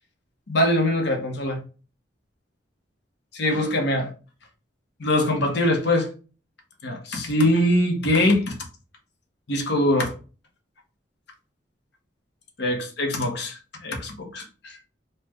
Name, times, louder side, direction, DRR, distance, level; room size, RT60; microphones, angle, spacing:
voice 1, 0.5-1.6 3.3-4.1 5.0-6.1 6.8-8.5 9.5-10.1 12.6-14.8, left 1 dB, 65° left, 0.8 m, -23 dB
3.2 x 2.1 x 3.3 m
head